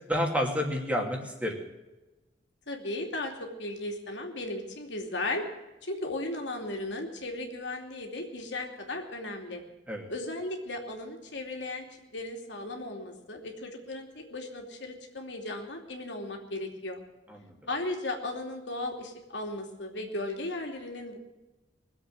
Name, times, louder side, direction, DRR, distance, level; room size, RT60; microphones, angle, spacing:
voice 1, 0.1-1.6 9.9-10.1 17.3-17.5, equal, 10° right, 1 dB, 2.6 m, -30 dB
voice 2, 2.7-5.4 5.8-9.6 10.1-11.9 12.1-17.0 17.7-21.2, left 2 dB, 80° left, 2 dB, 2.8 m, -36 dB
21.5 x 7.9 x 7.5 m, 1.1 s
head